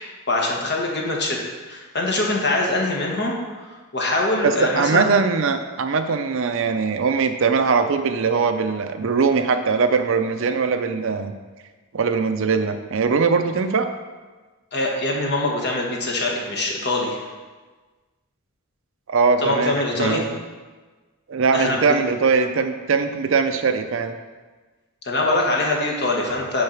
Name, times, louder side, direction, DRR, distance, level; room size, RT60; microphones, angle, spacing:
voice 1, 0.3-1.4 1.7-5.1 14.7-17.2 19.4-20.3 21.5-22.0 25.0-26.6, left 2 dB, 50° left, -1 dB, 1.3 m, -23 dB
voice 2, 4.4-11.3 11.9-13.9 19.1-20.2 21.3-24.2, right 5 dB, 60° right, 8 dB, 0.5 m, -21 dB
6.4 x 4.7 x 5.8 m, 1.3 s
head